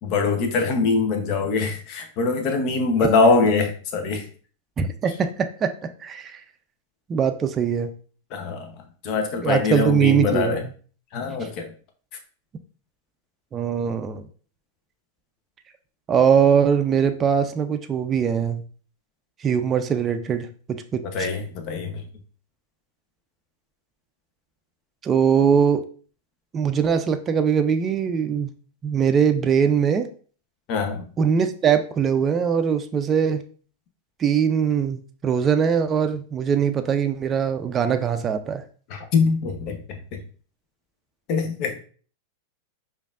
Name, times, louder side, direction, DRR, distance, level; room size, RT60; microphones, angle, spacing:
voice 1, 0.0-4.3 8.3-8.7 9.0-10.6 11.1-11.7 21.0-22.0 30.7-31.0 38.9-40.2 41.3-41.8, left 4 dB, 50° left, 4 dB, 0.8 m, -23 dB
voice 2, 4.8-5.7 6.0-6.4 7.1-7.9 9.4-10.6 13.5-14.2 16.1-18.6 19.4-20.5 20.9-21.3 25.0-25.8 26.5-28.5 28.8-30.1 31.2-33.4 34.2-38.6, right 7 dB, 25° right, 7 dB, 0.4 m, -21 dB
5.0 x 2.6 x 2.4 m, 0.42 s
hypercardioid pair, 110°, 0 cm